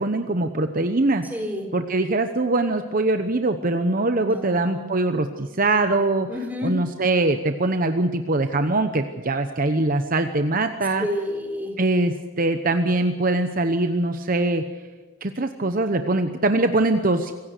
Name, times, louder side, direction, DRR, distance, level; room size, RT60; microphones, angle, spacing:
voice 1, 0.0-1.2 1.7-6.3 6.6-11.1 11.8-14.6 15.2-17.3, right 2 dB, 45° right, 8 dB, 1.0 m, -22 dB
voice 2, 1.3-1.7 4.1-4.9 6.3-6.7 11.0-11.7, left 1 dB, 10° right, 2 dB, 4.1 m, -29 dB
25.5 x 16.5 x 6.7 m, 1.4 s
head